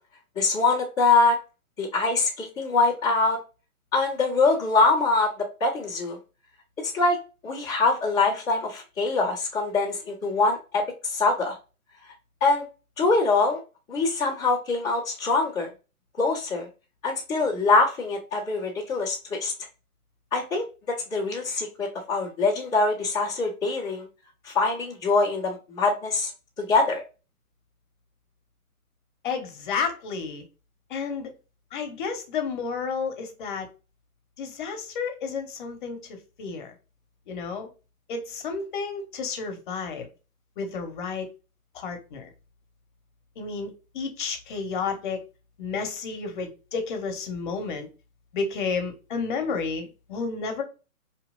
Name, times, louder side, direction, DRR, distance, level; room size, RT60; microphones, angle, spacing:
voice 1, 0.4-1.4 1.8-3.4 3.9-5.3 5.6-6.2 6.8-7.2 7.4-10.8 11.1-11.5 12.4-12.6 13.0-13.6 13.9-15.7 16.2-16.7 17.0-19.5 20.3-20.6 21.1-24.1 24.4-26.3 26.6-27.0, left 3 dB, 10° left, 0.5 m, -23 dB
voice 2, 29.2-30.4 30.9-31.3 31.7-33.7 34.4-36.7 37.3-37.7 38.1-40.1 40.6-41.3 41.7-42.3 43.4-45.2 45.6-47.9 48.3-50.6, left 5 dB, 35° left, 0.9 m, -31 dB
4.5 x 2.9 x 2.3 m
figure-of-eight pair, 130°, 44 cm